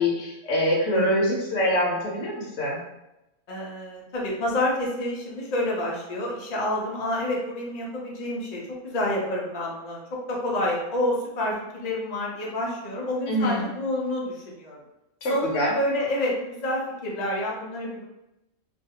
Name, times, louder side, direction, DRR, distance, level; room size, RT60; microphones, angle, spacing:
voice 1, 0.0-2.8 13.3-13.6 15.2-15.7, left 1 dB, 65° left, -2 dB, 0.9 m, -24 dB
voice 2, 3.5-10.0 10.3-14.8 15.3-18.0, left 1 dB, 50° left, -3 dB, 0.5 m, -28 dB
2.5 x 2.3 x 2.7 m, 0.92 s
omnidirectional pair, 1.4 m